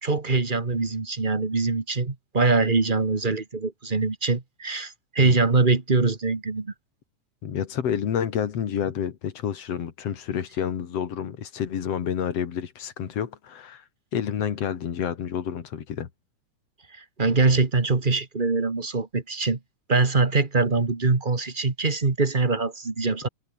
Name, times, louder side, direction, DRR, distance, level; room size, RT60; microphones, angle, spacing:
voice 1, 0.0-6.7 17.0-19.6 19.9-23.3, right 3 dB, 20° right, 1.3 m, -23 dB
voice 2, 7.4-13.8 14.1-16.1, left 8 dB, 55° left, 2.7 m, -29 dB
omnidirectional pair, 3.5 m